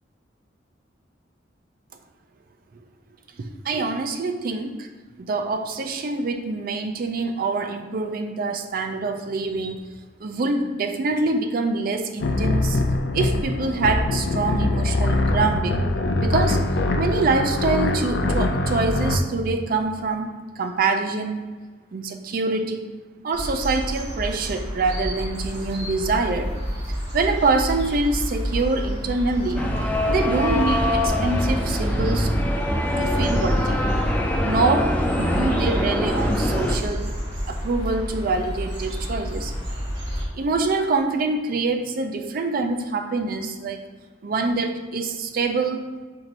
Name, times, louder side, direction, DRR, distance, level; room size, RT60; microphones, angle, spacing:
voice 1, 3.4-4.9 5.2-9.9 10.2-12.8 13.1-15.8 16.2-16.6 17.0-21.4 21.9-22.9 23.2-26.5 26.9-29.7 30.1-32.3 33.0-33.8 34.4-37.2 37.5-39.6 40.2-43.9 44.2-45.9, right 3 dB, 50° right, 7 dB, 0.4 m, -25 dB
sound 1, 12.2-19.2, left 2 dB, 70° left, 0.4 m, -23 dB
sound 2, 23.3-40.3, equal, 80° right, 1.3 m, -30 dB
sound 3, 29.6-36.8, left 1 dB, 10° left, 0.4 m, -23 dB
4.5 x 2.6 x 4.0 m, 1.3 s
head